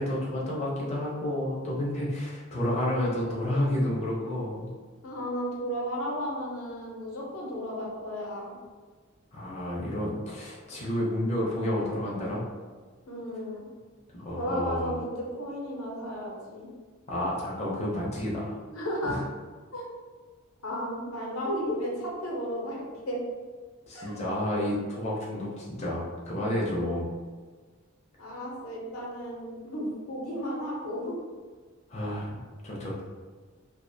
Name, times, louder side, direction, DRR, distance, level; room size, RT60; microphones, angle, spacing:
voice 1, 0.0-4.7 9.3-12.4 14.1-15.0 17.1-18.6 19.0-19.2 23.9-27.1 31.9-33.0, left 1 dB, 35° left, -5 dB, 0.5 m, -30 dB
voice 2, 5.0-8.6 13.1-13.6 14.4-16.7 18.7-19.2 19.7-19.9 20.6-23.2 23.9-24.2 28.2-31.2, equal, 85° left, -3 dB, 0.6 m, -34 dB
2.3 x 2.1 x 2.5 m, 1.5 s
head